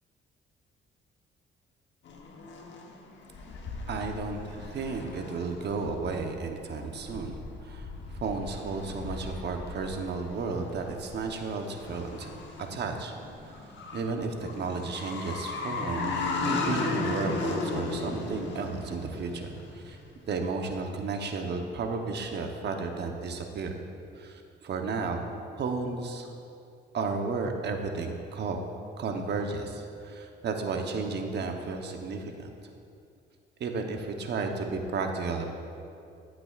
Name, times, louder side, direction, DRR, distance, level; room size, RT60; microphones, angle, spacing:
sound 1, 2.1-20.1, left 3 dB, 65° left, 1.1 m, -36 dB
voice 1, 3.9-12.3 12.7-13.1 13.4-20.0 20.2-23.7 24.2-25.3 25.6-26.3 26.9-28.6 29.0-32.5 33.6-35.5, right 4 dB, 60° right, 4 dB, 0.9 m, -33 dB
12.0 x 7.7 x 2.4 m, 2.5 s
cardioid pair, 90°, 20 cm